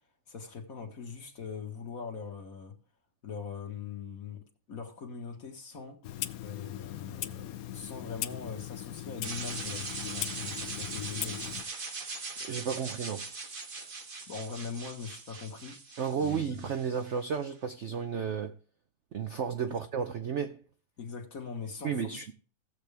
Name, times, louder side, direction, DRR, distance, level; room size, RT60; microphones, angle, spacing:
voice 1, 0.3-2.7 3.2-6.0 6.4-11.6 14.3-15.8 16.2-16.6 19.7-19.8 21.0-22.2, left 5 dB, 45° left, 2.0 m, -41 dB
Clock, 6.0-11.6, left 12 dB, 70° left, 0.9 m, -39 dB
sound 1, 9.2-17.3, right 3 dB, 30° right, 1.2 m, -41 dB
voice 2, 12.5-13.3 16.0-18.5 19.1-20.6 21.8-22.3, right 7 dB, 65° right, 0.7 m, -33 dB
15.5 x 7.8 x 3.4 m
omnidirectional pair, 2.1 m